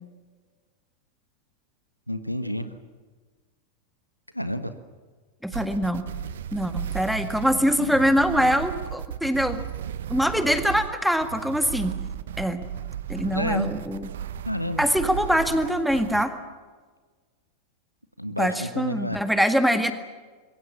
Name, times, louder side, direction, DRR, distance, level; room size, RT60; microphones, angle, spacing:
voice 1, 2.1-2.7 4.3-4.7 13.2-13.7 14.4-14.8 18.2-19.2, equal, 90° left, 11 dB, 1.4 m, -29 dB
voice 2, 5.4-6.1 6.5-9.6 10.1-11.9 12.4-12.7 13.1-14.1 14.8-16.3 18.4-19.9, equal, ahead, 8 dB, 1.9 m, -23 dB
sound 1, 5.5-16.3, right 9 dB, 60° right, 1.0 m, -35 dB
26.0 x 22.5 x 7.2 m, 1.4 s
figure-of-eight pair, 90°, 0 cm